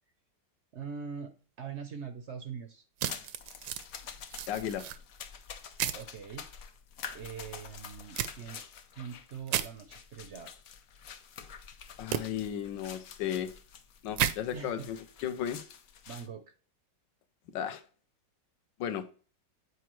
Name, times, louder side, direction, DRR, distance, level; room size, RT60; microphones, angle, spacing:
voice 1, 0.7-2.8 5.9-6.5 7.1-8.6 9.0-10.5 14.5-14.9 16.1-16.4, right 6 dB, 65° right, 7 dB, 0.7 m, -42 dB
sound 1, 3.0-16.3, left 7 dB, 60° left, 0.9 m, -48 dB
sound 2, 3.0-3.8 4.3-5.0 5.8-6.0 8.2-8.3 9.5-9.7 12.1-12.2 14.2-14.3, right 11 dB, 85° right, 1.3 m, -32 dB
voice 2, 4.5-4.8 12.0-13.5 14.0-15.6 17.5-17.8 18.8-19.1, left 9 dB, 75° left, 10 dB, 1.4 m, -34 dB
8.2 x 4.6 x 3.0 m, 0.39 s
omnidirectional pair, 2.0 m